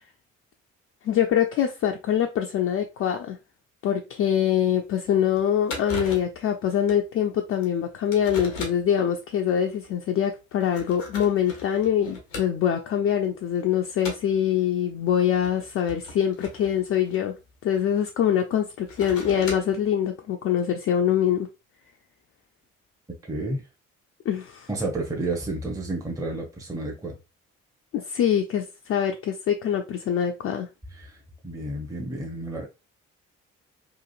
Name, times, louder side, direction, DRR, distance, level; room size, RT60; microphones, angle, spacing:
voice 1, 1.0-3.4 3.8-17.3 17.6-21.5 24.3-24.7 27.9-30.7, left 9 dB, 40° left, 0.4 m, -24 dB
sound 1, 4.5-4.6 5.0-5.1 5.4-5.5 5.7-6.4 6.9-7.0 7.6-7.7 8.1-9.0 9.7-9.9 10.5-12.8 13.2-13.6 14.0-14.4 15.3-17.8 18.7-19.9, left 2 dB, 85° left, 0.7 m, -38 dB
voice 2, 23.3-23.6 24.7-27.1 30.9-31.2 31.4-32.6, right 2 dB, 10° right, 0.7 m, -31 dB
2.9 x 2.4 x 2.4 m
figure-of-eight pair, 45°, 37 cm